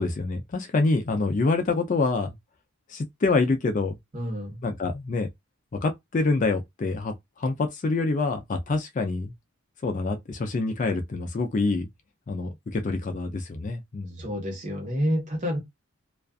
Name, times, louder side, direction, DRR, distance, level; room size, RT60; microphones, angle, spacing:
voice 1, 0.0-2.3 2.9-4.0 4.6-5.3 5.8-9.3 9.8-11.9 12.3-14.2, left 3 dB, 35° left, 0.4 m, -26 dB
voice 2, 4.1-4.6 14.2-15.6, equal, 35° right, 1.0 m, -28 dB
2.4 x 2.3 x 2.3 m
head